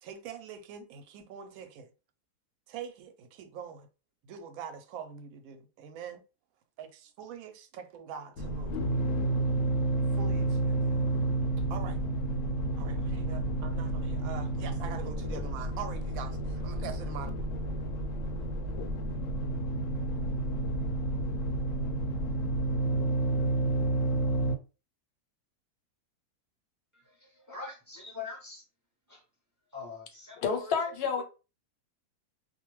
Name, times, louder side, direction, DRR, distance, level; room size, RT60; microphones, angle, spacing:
voice 1, 0.0-1.9 2.7-3.9 4.2-6.2 6.8-8.8 10.1-11.0 11.7-12.0 12.8-17.3, right 7 dB, 70° right, 0.9 m, -43 dB
sound 1, 8.4-24.6, right 2 dB, 70° left, 0.8 m, -30 dB
voice 2, 26.9-28.6 29.1-29.2 29.7-30.7, left 4 dB, 20° right, 0.4 m, -44 dB
voice 3, 30.4-31.2, left 6 dB, 90° left, 1.2 m, -29 dB
2.5 x 2.2 x 3.0 m
omnidirectional pair, 1.6 m